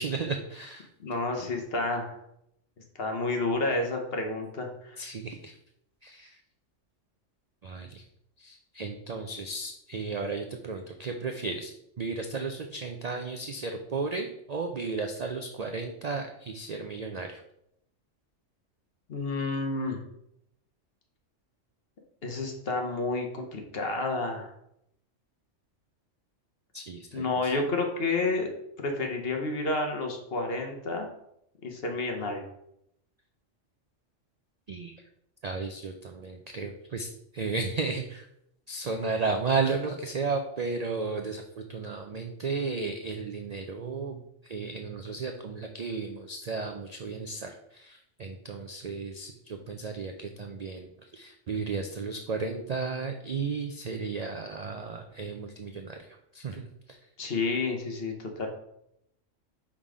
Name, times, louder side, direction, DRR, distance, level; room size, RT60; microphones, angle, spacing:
voice 1, 0.0-0.9 5.0-5.5 6.0-6.4 7.6-8.0 8.4-11.7 12.0-17.4 26.7-27.5 34.7-34.9 35.4-38.3 38.7-57.0, right 4 dB, 65° right, 4 dB, 0.4 m, -34 dB
voice 2, 1.0-2.2 3.0-5.0 19.1-20.0 22.2-24.5 27.1-28.5 28.8-31.1 31.6-32.5 57.2-58.5, left 3 dB, 55° left, 3 dB, 1.1 m, -30 dB
5.5 x 3.7 x 4.8 m, 0.77 s
omnidirectional pair, 1.3 m